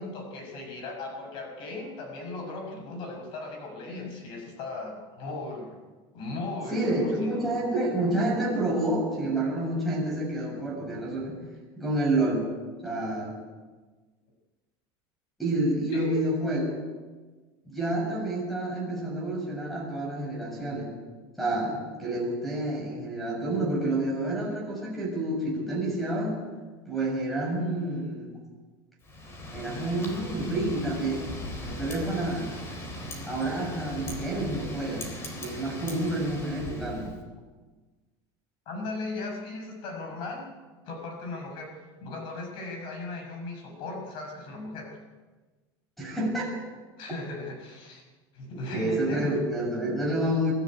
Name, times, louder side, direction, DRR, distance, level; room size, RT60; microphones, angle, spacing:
voice 1, 0.0-5.8 6.1-7.5 15.9-16.2 38.7-40.5 40.8-41.7 42.0-44.9 47.0-48.0 48.3-49.3, left 2 dB, 45° left, 3 dB, 6.2 m, -37 dB
voice 2, 6.7-11.4 11.8-12.4 12.8-13.4 15.4-16.7 17.7-20.9 21.4-26.4 26.9-28.3 29.5-31.3 31.6-32.5 33.2-37.2 46.0-46.5 48.7-50.5, right 1 dB, ahead, -1 dB, 6.7 m, -29 dB
Wind, 29.0-37.2, left 1 dB, 20° left, 3.7 m, -38 dB
23.0 x 13.0 x 9.7 m, 1.3 s
cardioid pair, 170°, 12 cm